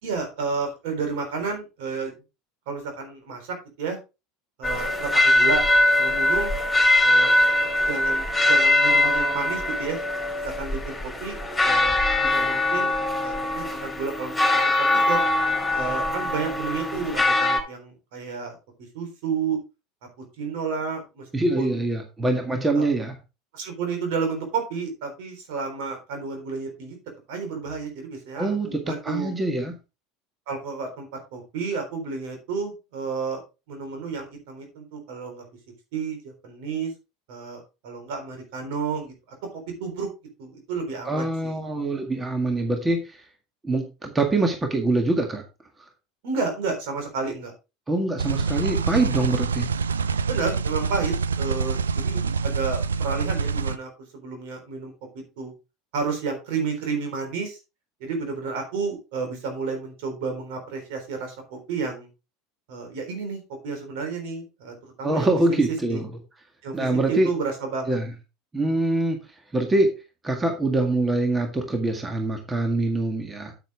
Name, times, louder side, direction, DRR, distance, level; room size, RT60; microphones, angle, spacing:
voice 1, 0.0-2.1 2.7-4.0 4.6-5.6 6.0-6.5 7.0-7.4 7.9-10.0 10.4-15.2 15.7-18.6 18.9-19.6 20.2-21.3 21.6-21.8 22.7-22.9 23.5-27.0 27.3-29.3 30.5-33.4 33.7-35.4 35.9-36.9 37.3-40.1 40.4-41.6 46.2-47.5 50.3-55.5 55.9-57.6 58.0-62.1 62.7-65.3 65.9-66.0 66.6-68.0, right 5 dB, 60° right, 5 dB, 3.9 m, -31 dB
sound 1, 4.6-17.6, left 2 dB, 5° left, 4.8 m, -22 dB
voice 2, 21.3-23.1 28.4-29.7 41.1-43.2 43.6-45.4 47.9-49.7 65.0-66.1 66.7-67.3 67.9-68.1 68.5-69.2 69.5-69.9 70.2-73.5, right 2 dB, 15° right, 4 dB, 1.9 m, -24 dB
sound 2, 48.2-53.8, right 5 dB, 80° right, 0.5 m, -26 dB
8.9 x 8.3 x 3.5 m, 0.28 s
figure-of-eight pair, 75°, 0 cm